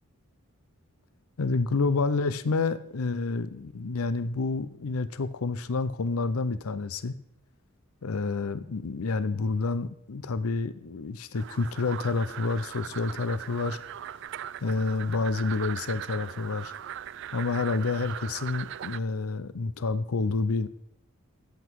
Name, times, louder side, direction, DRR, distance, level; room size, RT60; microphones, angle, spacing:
voice 1, 1.4-7.1 8.0-13.8 14.6-16.7 17.3-20.7, left 3 dB, 85° left, 15 dB, 0.6 m, -29 dB
sound 1, 11.3-19.0, right 10 dB, 55° right, 0.3 m, -39 dB
13.5 x 8.1 x 4.6 m, 0.74 s
head